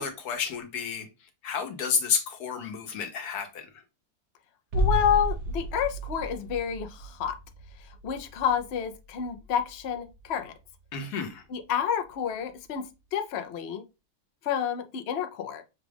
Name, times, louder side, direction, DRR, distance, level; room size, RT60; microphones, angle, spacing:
voice 1, 0.0-3.7 10.9-11.4, left 6 dB, 85° left, 1.4 m, -31 dB
voice 2, 4.7-7.4 8.0-10.5 11.5-12.9 13.1-13.8 14.4-15.6, left 8 dB, 55° left, 0.7 m, -29 dB
sound 1, 4.7-10.4 10.7-10.8, right 1 dB, 55° right, 1.0 m, -33 dB
6.0 x 2.4 x 3.3 m
omnidirectional pair, 1.6 m